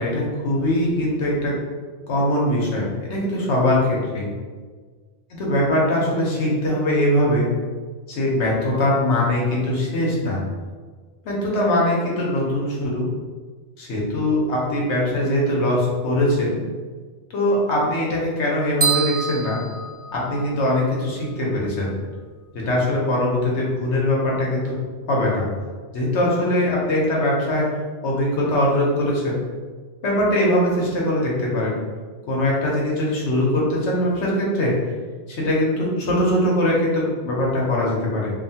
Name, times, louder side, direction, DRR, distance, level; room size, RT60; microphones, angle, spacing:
voice 1, 0.0-1.5 2.1-4.3 5.4-7.5 8.1-10.4 11.2-13.1 13.8-16.6 17.3-19.6 20.1-21.9 22.5-24.7 25.1-25.4 25.9-27.7 28.0-29.4 30.0-31.8 32.3-34.7 35.3-38.3, left 1 dB, 75° left, -3 dB, 1.1 m, -21 dB
sound 1, 18.8-20.7, right 5 dB, 90° right, 1.0 m, -26 dB
2.9 x 2.4 x 2.7 m, 1.5 s
omnidirectional pair, 1.2 m